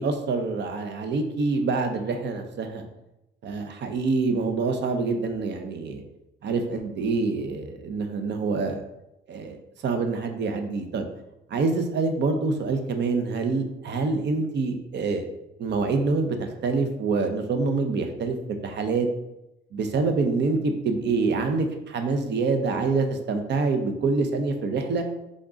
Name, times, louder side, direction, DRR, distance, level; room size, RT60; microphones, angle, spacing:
voice 1, 0.0-2.9 3.4-6.0 6.4-8.8 9.3-9.6 9.8-11.1 11.5-15.3 15.6-16.4 16.6-19.1 19.7-25.1, right 4 dB, 60° right, 6 dB, 0.8 m, -26 dB
3.7 x 3.6 x 3.8 m, 0.88 s
cardioid pair, 90°, 20 cm